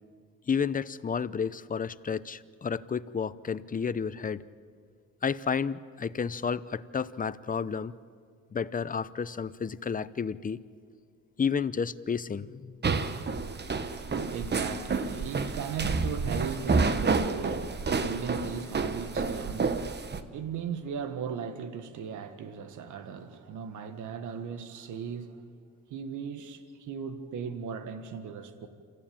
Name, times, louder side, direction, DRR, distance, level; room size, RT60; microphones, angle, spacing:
voice 1, 0.5-4.4 5.2-7.9 8.5-10.6 11.4-12.8, left 6 dB, 30° left, 0.8 m, -31 dB
sound 1, 12.8-20.2, right 4 dB, 35° right, 1.3 m, -29 dB
voice 2, 13.9-25.4 25.9-28.7, right 6 dB, 80° right, 1.6 m, -37 dB
27.5 x 15.0 x 8.8 m
cardioid pair, 90°, 30 cm